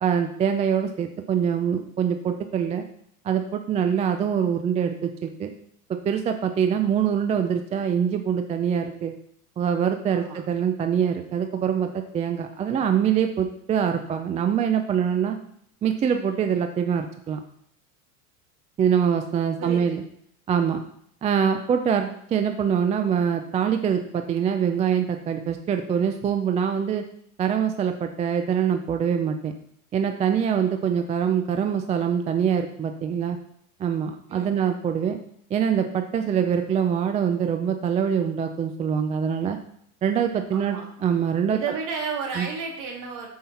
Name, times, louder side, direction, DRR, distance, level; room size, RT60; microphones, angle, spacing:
voice 1, 0.0-2.8 3.2-5.5 5.9-9.1 9.6-15.4 15.8-17.4 18.8-20.0 20.5-20.8 21.2-27.1 27.4-29.5 29.9-33.4 33.8-35.2 35.5-39.6 40.0-41.6 42.4-42.5, right 8 dB, 15° right, 6 dB, 0.4 m, -24 dB
voice 2, 19.6-20.0 34.3-34.6 40.5-40.9 41.5-43.3, right 5 dB, 45° right, 0 dB, 3.0 m, -32 dB
13.5 x 5.6 x 4.2 m, 0.68 s
supercardioid pair, 125°, 46 cm